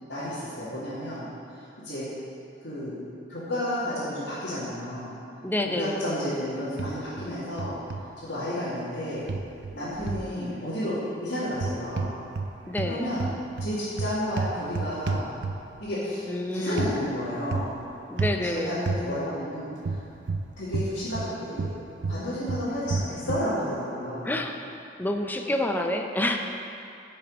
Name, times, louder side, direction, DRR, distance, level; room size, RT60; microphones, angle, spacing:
voice 1, 0.1-2.1 2.6-3.0 3.3-5.1 5.6-9.3 9.7-12.1 12.8-13.2 13.6-15.3 15.8-17.7 18.4-20.0 20.6-21.7 22.1-24.3, left 1 dB, 90° left, -13 dB, 2.1 m, -31 dB
voice 2, 5.4-6.0 12.7-13.0 16.3-16.8 18.1-18.8 24.2-24.6 25.0-26.4, left 1 dB, 10° left, 4 dB, 0.5 m, -28 dB
sound 1, 6.8-7.3 7.6-8.0 9.3-10.3 11.5-12.5 12.8-15.8 16.8-16.9 17.5-17.8 18.2-18.4 18.9-19.0 19.8-21.3 21.6-23.5, right 3 dB, 90° right, 0.5 m, -30 dB
9.6 x 5.5 x 5.3 m, 2.6 s
head